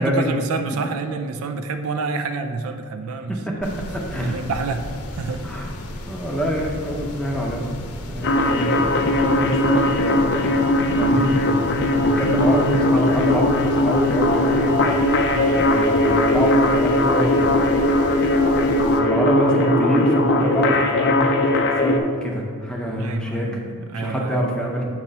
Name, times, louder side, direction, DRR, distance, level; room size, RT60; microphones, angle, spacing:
voice 1, 0.0-3.4 4.2-4.9 5.1-5.5 15.3-15.7 23.0-24.5, right 4 dB, 70° right, 8 dB, 0.4 m, -28 dB
voice 2, 3.2-4.4 5.4-5.7 6.1-7.7 8.1-10.6 10.9-11.3 11.9-14.9 15.5-17.7 18.5-22.0 22.2-23.5 23.9-24.9, equal, 5° left, -2 dB, 0.6 m, -25 dB
sound 1, 3.6-19.0, left 1 dB, 85° left, 0.7 m, -34 dB
sound 2, 8.2-22.0, left 1 dB, 50° left, 0.5 m, -19 dB
7.3 x 3.0 x 5.3 m, 2.1 s
head